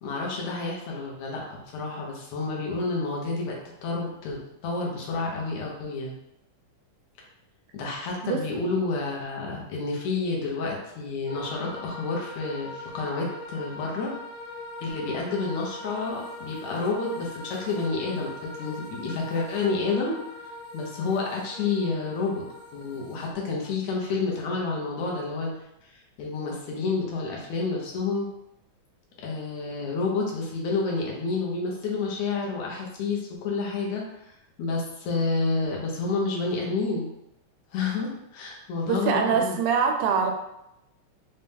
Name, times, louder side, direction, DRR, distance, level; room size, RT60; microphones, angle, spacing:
voice 1, 0.0-3.6 3.8-6.1 7.7-14.1 14.8-20.2 20.7-22.4 22.7-25.5 25.8-25.9 26.2-28.3 29.2-37.1 37.7-39.6, left 3 dB, 75° left, -2 dB, 2.0 m, -29 dB
sound 1, 11.3-23.3, left 2 dB, 55° left, 1.5 m, -41 dB
voice 2, 38.9-40.3, right 6 dB, 90° right, 4 dB, 2.0 m, -24 dB
5.3 x 2.2 x 3.3 m, 0.84 s
omnidirectional pair, 3.4 m